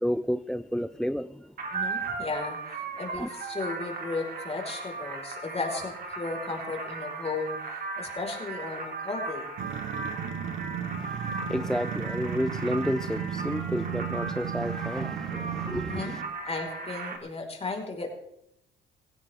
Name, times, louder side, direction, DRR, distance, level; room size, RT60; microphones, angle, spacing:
voice 1, 0.0-1.5 3.2-3.3 11.0-16.2, equal, 5° left, 0.4 m, -31 dB
sound 1, 1.6-17.2, right 4 dB, 50° right, 3.4 m, -37 dB
voice 2, 1.7-7.6 8.0-9.5 15.9-16.2 16.4-18.1, left 3 dB, 30° left, 5.0 m, -35 dB
sound 2, 9.6-16.4, right 9 dB, 80° right, 1.3 m, -35 dB
18.0 x 16.5 x 3.7 m
cardioid pair, 90°, 20 cm